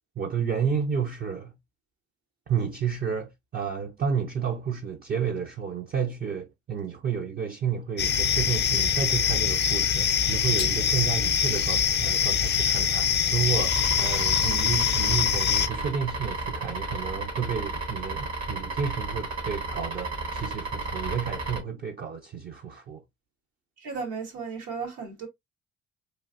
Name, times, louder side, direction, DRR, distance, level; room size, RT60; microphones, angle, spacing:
voice 1, 0.2-1.6 2.5-23.0, right 7 dB, 35° right, 0.4 m, -31 dB
sound 1, 8.0-15.7, left 7 dB, 40° left, 0.4 m, -24 dB
sound 2, 13.7-21.6, right 2 dB, 65° right, 1.1 m, -33 dB
voice 2, 23.8-25.3, right 5 dB, 90° right, 1.3 m, -35 dB
3.1 x 2.5 x 2.4 m
cardioid pair, 85°, 29 cm